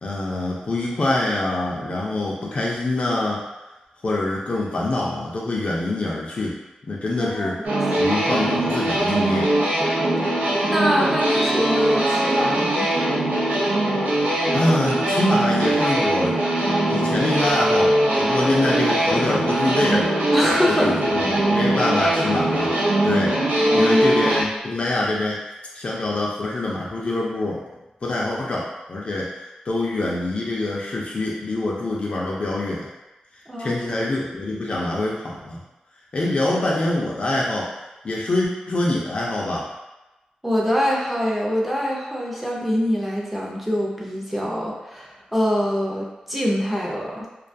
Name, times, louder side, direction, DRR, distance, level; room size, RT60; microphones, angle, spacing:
voice 1, 0.0-3.4 4.0-6.6 6.9-7.6 7.9-9.5 14.5-16.4 16.9-20.1 20.7-22.7 23.0-25.4 25.7-27.6 28.0-32.9 33.6-35.6 36.1-37.7 38.0-39.7, left 2 dB, 45° left, -4 dB, 0.4 m, -25 dB
voice 2, 7.2-7.5 10.2-10.3 10.7-12.9 20.3-20.9 23.6-24.0 33.5-33.9 40.4-47.3, equal, 5° right, -4 dB, 0.6 m, -24 dB
sound 1, 7.6-24.4, right 1 dB, 90° right, 0.6 m, -21 dB
2.4 x 2.3 x 2.6 m, 1.0 s
wide cardioid pair, 95°, 3 cm